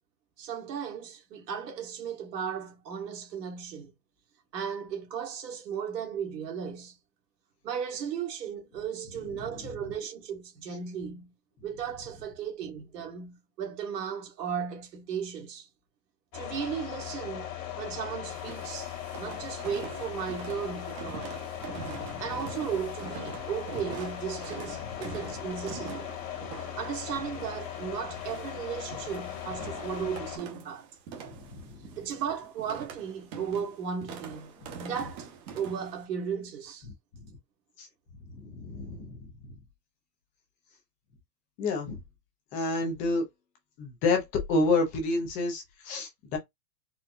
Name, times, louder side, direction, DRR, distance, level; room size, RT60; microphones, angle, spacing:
voice 1, 0.4-3.9 4.5-7.0 7.6-11.3 11.6-15.7 16.3-17.5 17.8-21.4 22.2-26.1 26.8-30.9 32.0-34.5 34.8-36.9, right 7 dB, 80° right, 1.5 m, -36 dB
voice 2, 9.3-9.7 21.6-22.3 24.7-25.0 31.3-32.0 34.6-34.8 36.8-36.9 37.2-37.3 37.8-37.9 38.3-39.5 41.6-42.0 42.5-43.3 43.8-46.4, left 3 dB, 15° left, 0.4 m, -30 dB
sound 1, 16.3-30.4, left 10 dB, 55° left, 1.4 m, -39 dB
sound 2, 18.3-36.0, right 6 dB, 35° right, 1.1 m, -45 dB
4.3 x 2.3 x 2.4 m
supercardioid pair, 150°, 48 cm